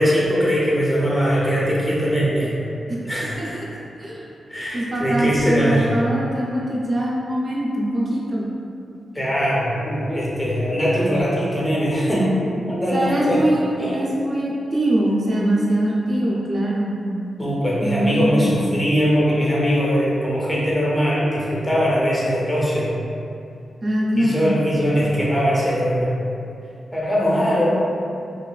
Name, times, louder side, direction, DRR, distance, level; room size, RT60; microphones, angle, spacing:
voice 1, 0.0-2.5 3.0-3.6 4.5-5.9 9.1-12.3 12.7-13.4 13.8-14.0 17.4-22.9 24.2-26.1 26.9-27.7, equal, 10° left, -6 dB, 0.6 m, -21 dB
voice 2, 4.7-8.5 12.9-17.0 17.8-18.4 23.8-24.5, right 1 dB, 40° right, -5 dB, 0.5 m, -22 dB
3.0 x 2.3 x 2.2 m, 2.6 s
wide cardioid pair, 130°, 0 cm